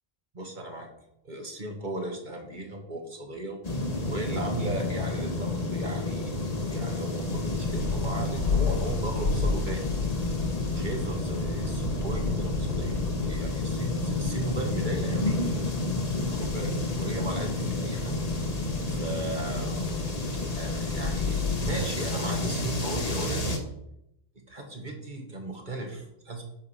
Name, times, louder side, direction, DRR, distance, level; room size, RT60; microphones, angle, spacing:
voice 1, 0.3-0.9 1.2-3.6 4.1-6.3 6.7-9.9 10.7-15.5 16.2-18.2 18.9-19.8 20.5-23.7 24.5-26.4, right 2 dB, 50° right, 2 dB, 1.8 m, -36 dB
sound 1, 3.6-23.6, left 2 dB, 40° left, 1.3 m, -30 dB
sound 2, 7.2-22.1, left 4 dB, 75° left, 1.5 m, -34 dB
10.5 x 4.9 x 5.7 m, 0.81 s
omnidirectional pair, 1.1 m